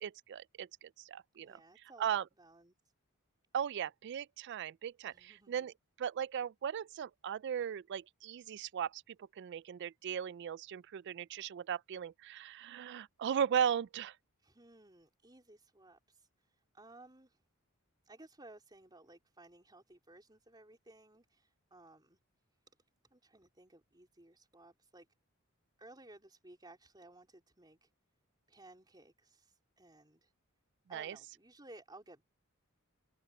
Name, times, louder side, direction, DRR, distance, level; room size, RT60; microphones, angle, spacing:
voice 1, 0.0-1.6 2.0-2.3 3.5-5.7 6.0-14.2 30.9-31.2, right 8 dB, 50° right, 0.3 m, -37 dB
voice 2, 1.4-2.8 5.0-5.7 14.4-17.4 18.0-22.2 23.1-25.1 25.8-27.9 28.5-30.3 30.9-32.2, right 2 dB, 20° right, 3.9 m, -58 dB
head